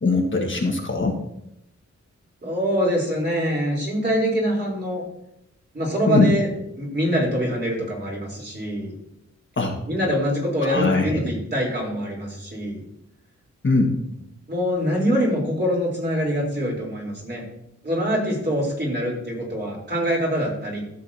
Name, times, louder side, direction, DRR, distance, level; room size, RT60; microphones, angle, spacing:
voice 1, 0.0-1.2 6.1-6.3 9.6-9.8 10.6-11.2 13.6-14.0, left 3 dB, 40° left, 1 dB, 1.5 m, -20 dB
voice 2, 2.4-5.0 5.7-6.5 6.8-8.9 9.9-12.8 14.5-17.4 17.8-20.8, equal, 35° right, -3 dB, 3.6 m, -24 dB
13.5 x 6.7 x 2.8 m, 0.81 s
wide cardioid pair, 105°, 29 cm